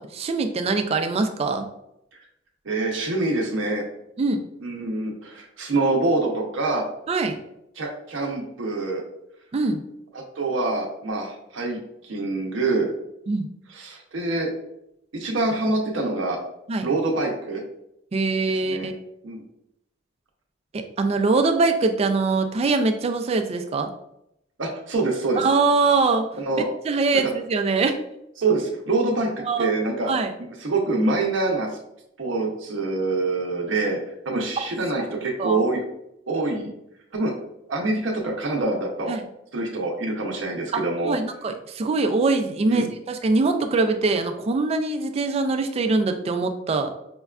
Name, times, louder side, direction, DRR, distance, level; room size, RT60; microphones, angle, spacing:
voice 1, 0.0-1.7 4.2-4.4 7.1-7.4 9.5-9.8 13.3-13.5 16.7-16.9 18.1-18.9 20.7-23.9 25.4-26.3 26.8-28.0 29.4-29.7 30.1-30.3 34.6-34.7 35.0-35.6 39.1-39.2 40.7-46.9, right 3 dB, 30° right, 6 dB, 0.3 m, -23 dB
voice 2, 2.6-3.8 4.6-6.8 7.8-9.0 10.4-12.9 13.7-14.5 15.1-16.4 16.8-17.6 18.6-18.9 19.2-19.4 24.6-25.4 26.4-26.7 28.4-30.1 30.6-31.7 32.2-34.0 34.3-35.8 36.3-36.7 37.1-37.3 37.7-39.2 39.5-41.2 42.7-42.9, right 2 dB, 75° right, 0 dB, 0.6 m, -25 dB
5.1 x 2.2 x 2.3 m, 0.81 s
head